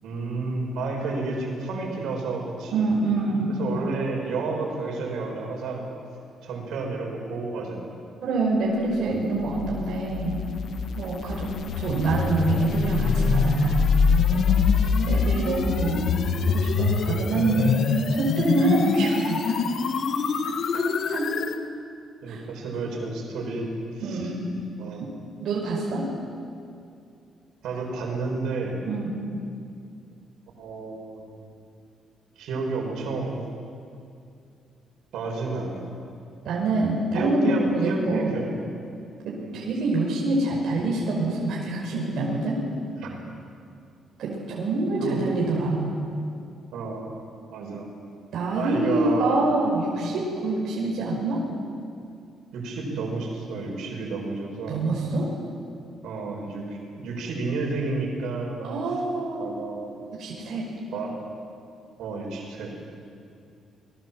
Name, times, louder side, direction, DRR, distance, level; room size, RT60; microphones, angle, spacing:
voice 1, 0.0-2.9 3.6-5.8 6.4-7.9 14.8-15.4 22.2-23.6 23.9-24.3 24.8-25.0 27.6-28.8 30.6-31.3 32.4-33.4 35.1-35.9 37.1-38.7 39.4-39.6 43.0-43.2 45.0-45.2 46.7-47.0 47.5-47.9 48.5-49.4 52.5-54.8 56.0-58.6 59.4-60.2 60.9-61.2 62.0-62.7, right 3 dB, 80° right, 0 dB, 6.4 m, -31 dB
voice 2, 2.7-3.6 8.2-10.4 11.0-11.5 11.8-14.0 14.3-16.1 16.5-19.6 20.4-21.2 22.3-22.4 24.0-24.4 25.4-26.1 28.8-29.1 36.5-38.3 39.3-42.6 44.2-46.0 48.3-51.4 54.7-55.3 58.6-59.5 60.2-60.7, right 2 dB, 60° right, -3 dB, 5.3 m, -26 dB
sound 1, 9.5-21.6, left 5 dB, 55° left, 1.5 m, -24 dB
28.5 x 21.0 x 7.7 m, 2.5 s
cardioid pair, 155°, 0 cm